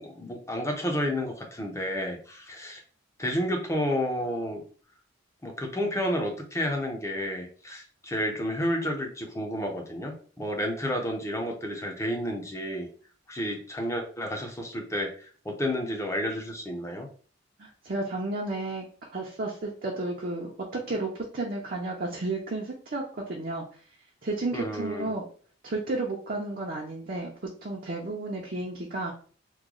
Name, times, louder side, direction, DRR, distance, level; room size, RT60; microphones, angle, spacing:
voice 1, 0.0-2.8 3.2-4.6 5.4-12.9 13.3-17.1 24.5-25.1, equal, 15° left, 2 dB, 0.6 m, -31 dB
voice 2, 17.6-18.8 19.1-23.8 24.2-25.2 25.6-27.3 27.6-29.1, right 2 dB, 45° right, -2 dB, 0.6 m, -32 dB
3.0 x 2.2 x 3.7 m, 0.42 s
head